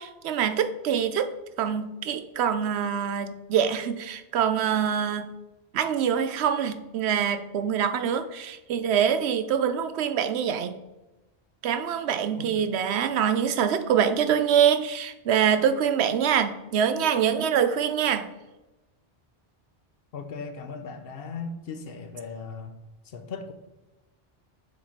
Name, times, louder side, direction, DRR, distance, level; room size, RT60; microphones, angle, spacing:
voice 1, 0.0-5.3 5.7-10.8 11.6-18.3, right 8 dB, 90° right, 10 dB, 0.9 m, -25 dB
voice 2, 12.4-12.7 20.1-22.7 23.0-23.5, left 4 dB, 65° left, 8 dB, 0.9 m, -38 dB
6.7 x 4.1 x 4.4 m, 1.1 s
omnidirectional pair, 1.1 m